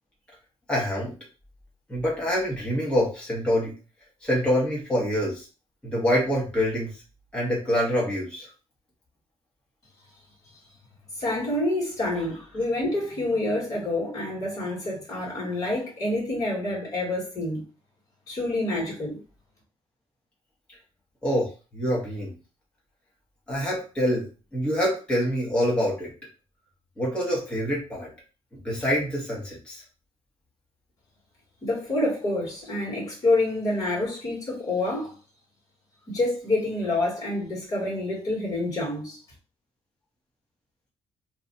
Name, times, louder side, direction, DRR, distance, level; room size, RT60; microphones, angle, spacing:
voice 1, 0.7-1.1 1.9-3.7 4.2-5.5 5.8-7.0 7.3-8.5 21.2-22.3 23.5-24.3 24.5-26.1 27.0-28.1 28.5-29.8, equal, 10° left, 1.3 m, -26 dB
voice 2, 11.2-17.6 18.3-19.2 31.6-35.2 36.1-39.2, left 2 dB, 35° left, 1.8 m, -27 dB
3.0 x 2.4 x 3.9 m
cardioid pair, 165°, 11 cm